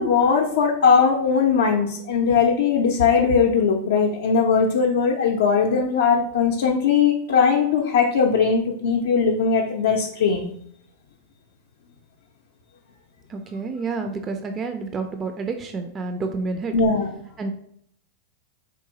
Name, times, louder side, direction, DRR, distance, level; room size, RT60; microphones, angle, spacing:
voice 1, 0.0-10.5 16.7-17.1, left 5 dB, 75° left, -1 dB, 0.4 m, -19 dB
voice 2, 13.3-16.7 17.4-17.5, right 4 dB, 30° right, 6 dB, 0.3 m, -29 dB
3.7 x 2.6 x 2.8 m, 0.68 s
hypercardioid pair, 105°, 0 cm